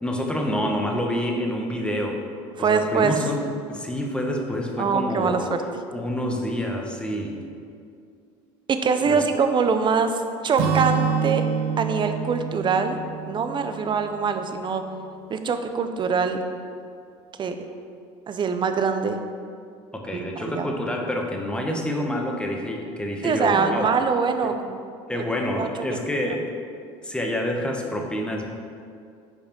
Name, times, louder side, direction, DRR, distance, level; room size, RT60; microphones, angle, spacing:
voice 1, 0.0-2.2 2.6-5.5 5.9-7.4 9.0-9.2 19.9-23.9 24.4-24.5 25.1-26.5 27.0-28.5, equal, 5° left, 1 dB, 0.9 m, -27 dB
voice 2, 2.6-3.1 4.8-5.6 8.7-11.4 11.8-13.0 13.3-14.8 15.3-16.4 17.4-17.6 18.3-19.2 20.1-20.7 23.2-24.8 25.2-25.3 25.6-25.7, right 5 dB, 30° right, 7 dB, 0.6 m, -23 dB
Acoustic guitar / Strum, 10.6-14.5, right 7 dB, 75° right, 0.7 m, -27 dB
5.9 x 4.2 x 5.2 m, 2.4 s
supercardioid pair, 90°, 15 cm